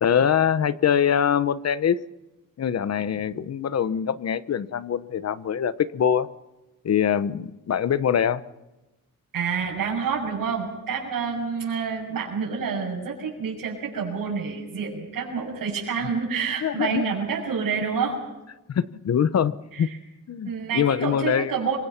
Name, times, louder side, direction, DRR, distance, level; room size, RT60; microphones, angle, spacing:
voice 1, 0.0-2.0 2.6-6.3 6.8-8.4 16.6-17.1 18.7-19.9 20.3-21.5, left 8 dB, 50° left, 15 dB, 0.9 m, -23 dB
voice 2, 9.3-18.2 19.7-20.0 20.4-21.8, right 6 dB, 80° right, -5 dB, 6.8 m, -28 dB
27.5 x 24.5 x 5.9 m, 1.0 s
wide cardioid pair, 160°, 33 cm